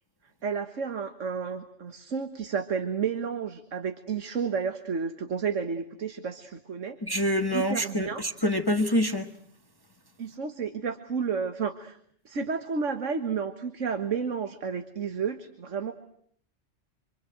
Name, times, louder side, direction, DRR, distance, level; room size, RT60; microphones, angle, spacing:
voice 1, 0.4-7.0 7.5-8.2 10.2-12.0 12.3-15.9, right 6 dB, 85° right, 1.8 m, -31 dB
voice 2, 7.0-9.3, left 1 dB, 20° left, 1.4 m, -26 dB
27.0 x 24.5 x 8.0 m
omnidirectional pair, 1.2 m